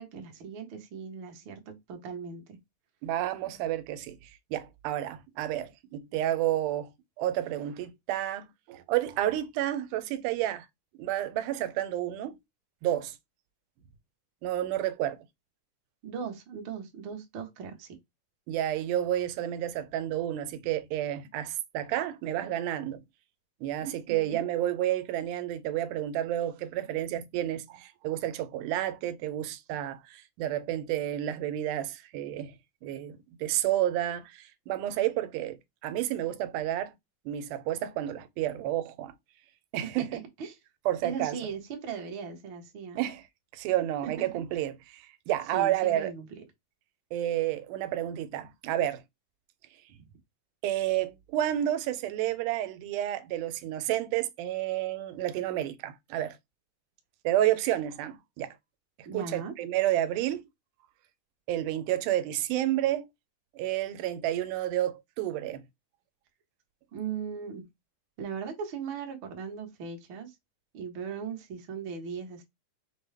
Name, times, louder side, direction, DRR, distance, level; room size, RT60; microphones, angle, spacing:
voice 1, 0.0-2.6 16.0-18.0 23.8-24.4 39.8-40.6 41.0-43.0 44.0-44.1 45.5-46.4 50.0-50.1 59.0-59.5 66.9-67.6 68.2-70.3 70.7-72.4, right 6 dB, 60° right, 1.3 m, -38 dB
voice 2, 3.0-6.9 7.2-10.7 11.0-12.4 12.8-13.2 14.4-15.2 18.5-23.0 23.6-32.6 32.8-36.9 37.3-39.1 39.7-40.1 40.9-41.4 43.0-43.2 43.5-46.1 47.1-49.0 50.6-56.4 57.3-58.6 59.1-60.4 61.5-63.1 63.6-65.6, right 13 dB, 85° right, 2.1 m, -30 dB
5.6 x 2.2 x 3.2 m
omnidirectional pair, 3.6 m